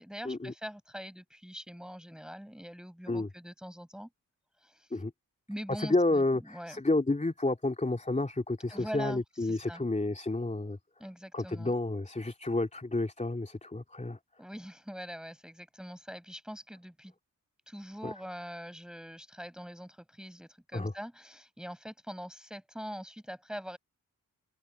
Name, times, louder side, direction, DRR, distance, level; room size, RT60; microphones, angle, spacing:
voice 1, 0.0-4.1 4.6-5.0 5.5-6.2 6.5-6.8 8.7-9.9 11.0-11.7 14.4-17.1 17.7-23.8, equal, ahead, 6.4 m, -43 dB
voice 2, 5.8-10.8 11.3-14.2 18.0-18.1 20.7-20.9, left 2 dB, 20° left, 3.0 m, -30 dB
open air
cardioid pair, 70°, 35 cm